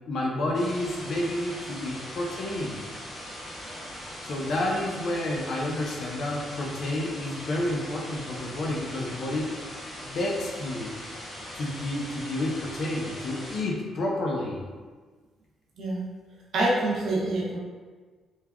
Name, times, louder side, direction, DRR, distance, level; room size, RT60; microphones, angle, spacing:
voice 1, 0.1-2.8 4.2-9.6 10.0-10.9 11.5-14.7, left 1 dB, 60° left, -2 dB, 0.6 m, -30 dB
sound 1, 0.5-13.6, equal, 35° left, 1.2 m, -40 dB
voice 2, 16.5-17.6, right 2 dB, 70° right, -4 dB, 0.6 m, -26 dB
3.2 x 2.3 x 2.2 m, 1.4 s
cardioid pair, 90°, 0 cm